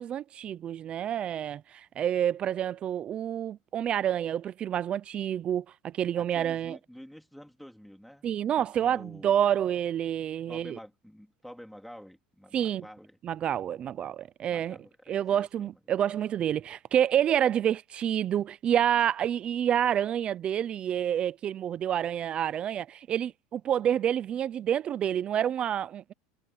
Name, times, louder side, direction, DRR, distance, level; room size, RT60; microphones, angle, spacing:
voice 1, 0.0-6.8 8.2-10.8 12.5-12.8 13.2-14.8 15.1-26.1, right 10 dB, 30° right, 0.5 m, -28 dB
voice 2, 6.2-9.5 10.5-13.2 14.5-15.7, equal, ahead, 3.6 m, -49 dB
supercardioid pair, 150°, 4 cm